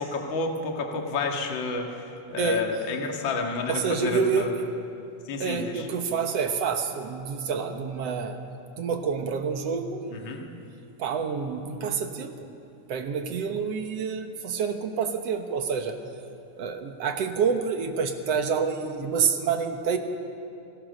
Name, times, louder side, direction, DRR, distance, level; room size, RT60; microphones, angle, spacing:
voice 1, 0.0-4.5 5.2-5.9 10.1-10.5, left 3 dB, 45° left, 2 dB, 2.2 m, -30 dB
voice 2, 3.7-4.7 5.4-8.4 8.8-10.4 11.0-12.3 12.9-16.0 16.6-20.0, right 6 dB, 60° right, 6 dB, 2.0 m, -28 dB
29.5 x 17.5 x 6.5 m, 2.7 s
omnidirectional pair, 3.6 m